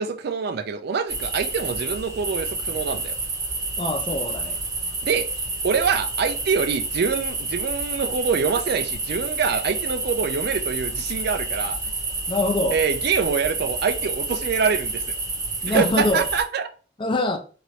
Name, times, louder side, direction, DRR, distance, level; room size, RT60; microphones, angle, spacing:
voice 1, 0.0-3.2 5.0-5.3 5.6-11.8 12.7-15.1 15.7-16.7, right 5 dB, 60° right, 0.4 m, -25 dB
sound 1, 1.1-16.4, right 3 dB, 20° right, 0.8 m, -29 dB
voice 2, 3.8-4.6 12.3-12.8 15.6-16.2 17.0-17.4, left 2 dB, 25° left, 0.4 m, -24 dB
2.8 x 2.6 x 3.1 m
head